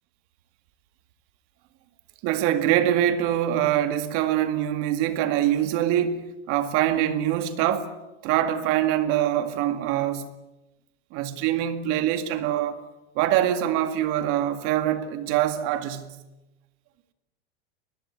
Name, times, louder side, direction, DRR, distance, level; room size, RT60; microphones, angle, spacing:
voice 1, 2.2-7.9 8.2-10.3 11.1-12.7 13.2-16.1, right 11 dB, 40° right, 2.1 m, -24 dB
23.5 x 20.5 x 8.8 m
supercardioid pair, 160°, 35 cm